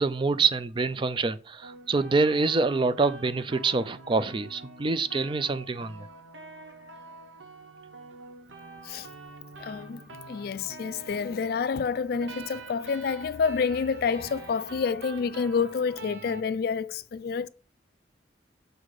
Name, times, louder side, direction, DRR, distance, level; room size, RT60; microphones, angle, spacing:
voice 1, 0.0-6.1, right 3 dB, 25° right, 0.4 m, -26 dB
sound 1, 1.6-16.4, right 3 dB, 80° right, 0.9 m, -46 dB
voice 2, 9.6-10.0 10.3-17.5, left 5 dB, 55° left, 0.3 m, -28 dB
6.5 x 4.1 x 4.7 m
head